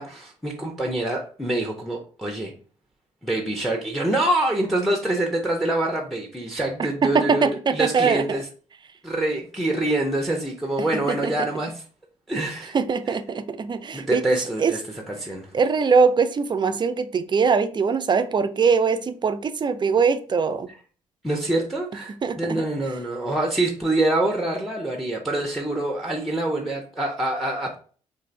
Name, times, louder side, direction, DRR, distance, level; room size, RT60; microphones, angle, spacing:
voice 1, 0.0-2.5 3.2-8.4 9.0-11.8 12.3-12.8 13.1-13.2 13.9-14.8 15.1-15.5 21.2-27.8, right 1 dB, ahead, 2 dB, 0.8 m, -25 dB
voice 2, 7.0-8.2 10.9-11.5 12.7-14.7 15.5-20.7 22.2-22.6, right 5 dB, 25° right, 10 dB, 0.5 m, -22 dB
3.7 x 2.6 x 3.2 m, 0.41 s
hypercardioid pair, 45°, 17 cm